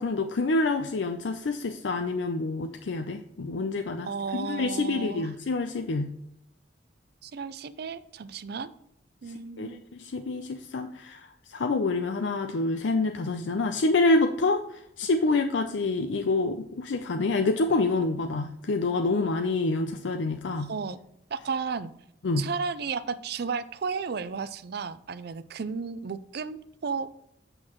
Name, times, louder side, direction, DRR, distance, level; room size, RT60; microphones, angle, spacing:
voice 1, 0.0-6.2 9.6-20.7 22.2-22.5, left 3 dB, 80° left, 6 dB, 0.5 m, -27 dB
voice 2, 4.0-5.3 7.2-8.7 9.2-9.8 20.6-21.0 21.3-21.9 22.4-27.1, right 5 dB, 60° right, 14 dB, 0.4 m, -33 dB
7.7 x 6.4 x 3.0 m, 0.81 s
head